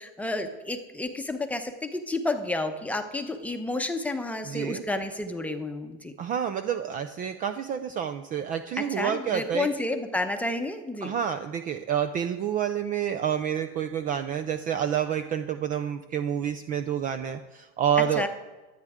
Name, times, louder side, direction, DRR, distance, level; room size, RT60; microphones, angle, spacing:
voice 1, 0.0-6.1 8.9-11.1 18.2-18.3, left 2 dB, 5° left, 6 dB, 0.8 m, -30 dB
voice 2, 4.5-4.8 6.2-9.7 11.0-18.3, right 9 dB, 30° right, 10 dB, 0.4 m, -28 dB
24.0 x 8.9 x 3.6 m, 1.2 s
cardioid pair, 155°, 30 cm